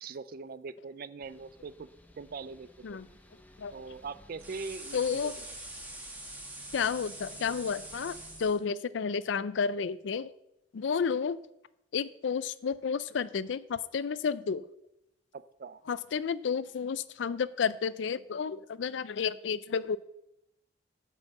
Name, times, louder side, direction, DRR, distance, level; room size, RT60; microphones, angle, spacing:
voice 1, 0.0-1.9 2.2-3.0 3.7-5.4 15.3-15.8, right 4 dB, 50° right, 16 dB, 0.4 m, -42 dB
sound 1, 1.2-8.5, equal, 10° left, 0.8 m, -57 dB
sound 2, 4.4-8.6, right 1 dB, 10° right, 1.4 m, -44 dB
voice 2, 4.9-5.4 6.7-10.3 10.7-11.4 11.9-14.6 15.9-20.0, left 6 dB, 75° left, 17 dB, 0.4 m, -31 dB
9.3 x 5.5 x 7.1 m, 0.84 s
head